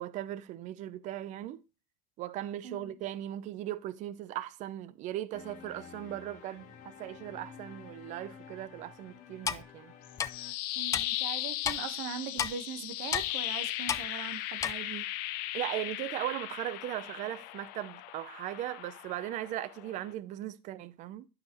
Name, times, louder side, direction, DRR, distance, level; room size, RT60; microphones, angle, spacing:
voice 1, 0.0-1.6 2.2-9.9 15.5-21.3, right 13 dB, 50° right, 0.6 m, -38 dB
voice 2, 2.6-3.0 10.8-15.0, right 7 dB, 80° right, 1.3 m, -41 dB
sound 1, 5.3-10.5, left 7 dB, 50° left, 1.4 m, -51 dB
Clock, 9.5-9.6 10.2-10.3 10.9-11.0 11.6-11.8 12.4-12.5 13.1-13.3 13.9-14.0 14.6-14.7, left 7 dB, 20° left, 0.3 m, -30 dB
sound 2, 10.0-20.1, left 15 dB, 70° left, 0.6 m, -37 dB
11.0 x 5.0 x 3.0 m
cardioid pair, 160°, 17 cm